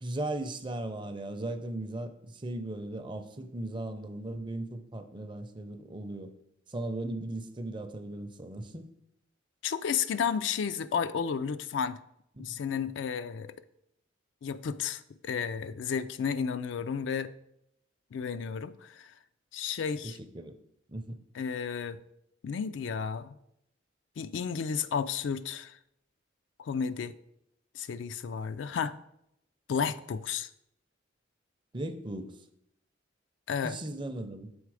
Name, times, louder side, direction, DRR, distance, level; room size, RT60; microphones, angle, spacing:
voice 1, 0.0-6.3 6.7-8.8 12.4-12.6 20.0-20.6 20.9-21.2 31.7-32.4 33.6-34.5, right 1 dB, 25° right, 8 dB, 0.5 m, -37 dB
voice 2, 9.6-12.0 12.4-13.5 14.4-17.3 18.1-19.1 19.5-20.2 21.3-22.0 22.4-23.3 24.2-25.8 26.6-27.1 27.7-29.0 29.7-30.5 33.5-33.8, left 6 dB, 70° left, 12 dB, 0.3 m, -32 dB
7.1 x 4.0 x 4.8 m, 0.78 s
head